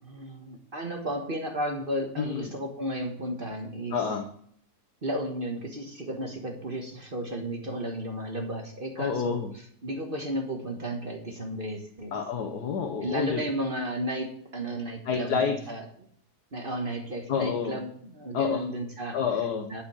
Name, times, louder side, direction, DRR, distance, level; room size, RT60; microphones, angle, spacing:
voice 1, 0.0-4.0 5.0-9.4 9.8-12.1 13.0-15.8 16.5-19.2 19.7-19.8, right 1 dB, 35° right, 3 dB, 1.5 m, -33 dB
voice 2, 2.2-2.5 3.9-4.3 9.0-9.5 12.1-13.4 15.0-15.6 17.3-17.8 18.3-18.7 19.1-19.7, left 6 dB, 70° left, 2 dB, 1.6 m, -28 dB
11.5 x 5.2 x 7.4 m, 0.63 s
omnidirectional pair, 1.8 m